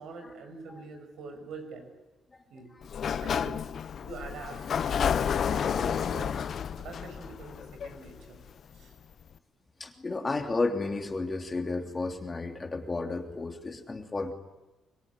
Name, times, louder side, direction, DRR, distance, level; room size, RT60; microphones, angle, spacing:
voice 1, 0.0-1.9 2.5-2.7 3.2-3.7 4.0-4.6 4.9-8.4 8.7-9.0, right 4 dB, 75° right, 5 dB, 6.4 m, -44 dB
Sliding door, 2.8-8.5, left 7 dB, 55° left, 0.9 m, -30 dB
voice 2, 9.8-14.3, left 3 dB, 25° left, 4 dB, 3.0 m, -32 dB
25.0 x 22.0 x 9.9 m, 1.1 s
cardioid pair, 90°, 0 cm